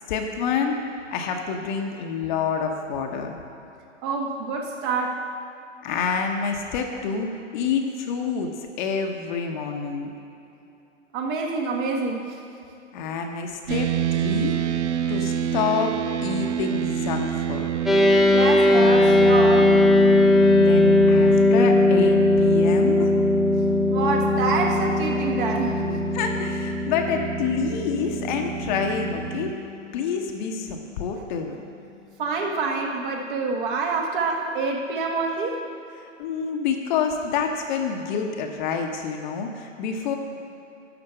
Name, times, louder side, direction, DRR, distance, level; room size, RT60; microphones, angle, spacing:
voice 1, 0.1-0.8 1.1-3.4 5.8-8.5 8.8-10.1 12.9-14.6 15.1-17.7 20.6-23.1 26.1-29.5 29.9-31.6 36.0-40.2, left 6 dB, 40° left, 3 dB, 1.0 m, -27 dB
voice 2, 4.0-5.2 11.1-12.4 18.3-19.8 23.9-25.9 32.2-35.6, right 4 dB, 40° right, 1 dB, 1.5 m, -26 dB
sound 1, 13.7-29.5, right 9 dB, 70° right, 0.6 m, -28 dB
sound 2, 17.9-29.4, left 2 dB, ahead, 0.7 m, -19 dB
12.0 x 4.4 x 7.8 m, 2.8 s
hypercardioid pair, 135°, 37 cm